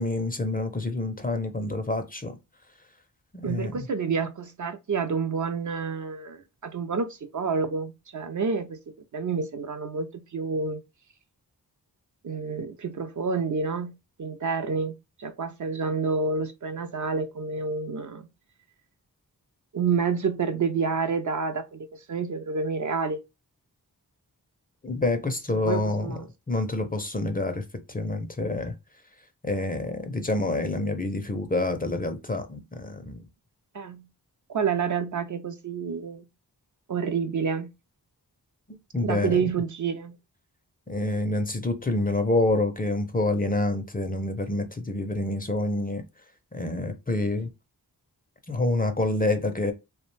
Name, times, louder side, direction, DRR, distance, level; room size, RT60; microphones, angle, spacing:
voice 1, 0.0-2.4 3.3-3.9 24.8-26.2 26.5-28.7 29.4-33.2 38.7-39.5 40.9-46.0 46.5-47.5 48.5-49.7, left 2 dB, 20° left, 0.5 m, -27 dB
voice 2, 3.4-8.8 9.1-10.8 12.2-13.9 14.2-18.2 19.7-23.2 25.6-26.3 33.7-34.1 34.5-36.2 36.9-37.7 39.0-40.2, right 5 dB, 50° right, 0.4 m, -29 dB
2.4 x 2.1 x 3.1 m
cardioid pair, 45°, 40 cm